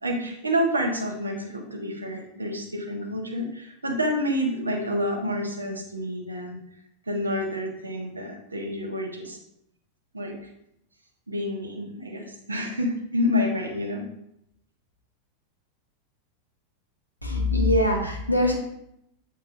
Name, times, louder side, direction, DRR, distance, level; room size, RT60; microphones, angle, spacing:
voice 1, 0.0-6.6 7.1-9.4 10.1-10.3 11.3-14.1, left 1 dB, 80° right, 1 dB, 1.3 m, -28 dB
voice 2, 17.2-18.5, left 1 dB, 90° left, 0 dB, 1.3 m, -22 dB
8.3 x 4.5 x 2.7 m, 0.77 s
figure-of-eight pair, 90°, 0 cm